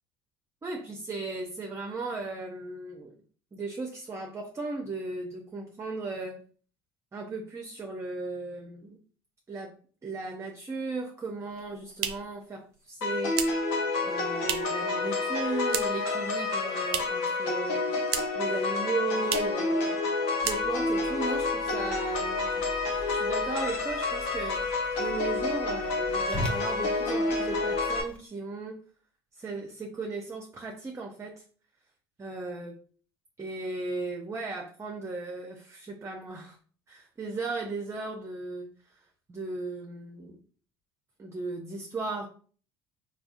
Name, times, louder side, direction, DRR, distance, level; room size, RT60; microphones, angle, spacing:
voice 1, 0.6-3.1 3.5-6.4 7.1-9.0 9.5-9.7 10.0-13.4 14.0-17.9 18.3-20.0 20.4-22.7 23.1-24.7 25.0-28.8 29.3-31.4 32.2-32.8 33.4-36.6 36.9-39.0 39.3-40.4 41.2-42.3, right 3 dB, 20° right, 2 dB, 0.5 m, -36 dB
sound 1, 11.4-14.9 15.2-16.1 16.4-17.3 17.6-18.5 18.8-18.9 19.2-19.6 20.0-20.1 20.4-21.0, right 9 dB, 80° right, 0.4 m, -35 dB
sound 2, 13.0-28.0, left 3 dB, 70° left, 0.8 m, -29 dB
Whoosh swoosh swish, 20.4-28.2, left 1 dB, 10° left, 0.8 m, -42 dB
3.5 x 2.2 x 2.4 m, 0.43 s
hypercardioid pair, 70°, 13 cm